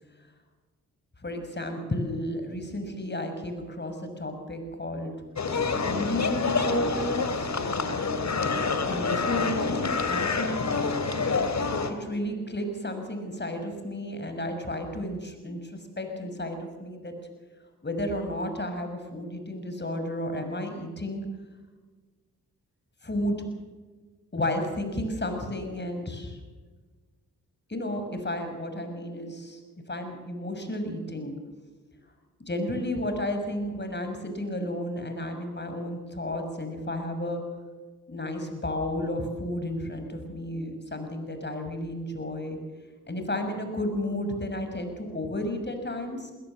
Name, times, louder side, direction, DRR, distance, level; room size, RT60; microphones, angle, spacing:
voice 1, 1.2-5.1 5.8-7.5 8.9-10.9 12.0-17.1 17.8-21.2 23.0-23.4 24.3-26.4 27.7-29.6 29.9-31.4 32.5-37.4 38.1-42.6 43.1-46.3, left 1 dB, 30° left, 6 dB, 6.4 m, -32 dB
sound 1, 5.4-11.9, left 4 dB, 50° left, 2.8 m, -27 dB
21.0 x 17.5 x 7.6 m, 1.3 s
hypercardioid pair, 40°, 36 cm